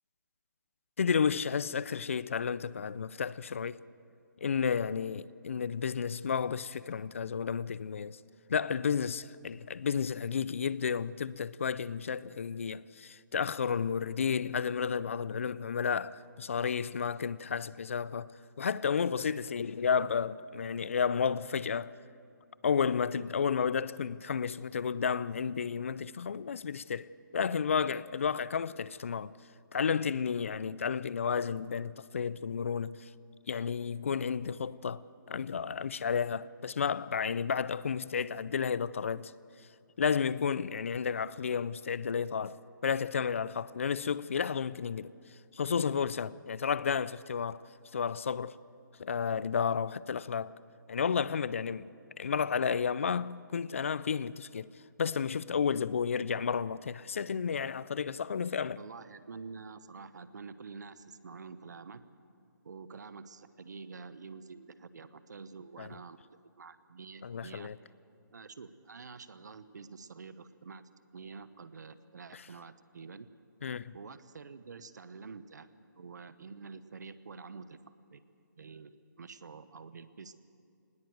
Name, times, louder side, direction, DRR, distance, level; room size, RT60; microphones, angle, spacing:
voice 1, 1.0-3.8 4.4-8.2 8.5-18.3 18.6-21.9 22.6-27.1 27.3-29.3 29.7-33.1 33.5-35.0 35.3-39.3 40.0-42.6 42.8-45.1 45.5-47.6 47.9-48.6 49.0-50.5 50.9-51.9 52.2-54.7 55.0-58.8 65.8-65.9 67.2-67.8 72.3-72.4 73.6-74.0, left 6 dB, 40° left, 0.4 m, -32 dB
voice 2, 58.8-62.0 62.6-66.2 66.6-67.7 68.3-70.8 71.1-73.3 73.9-75.7 76.0-77.8 78.1-78.2 78.6-80.3, right 5 dB, 60° right, 1.1 m, -48 dB
19.5 x 19.0 x 7.9 m
hypercardioid pair, 170°, 11 cm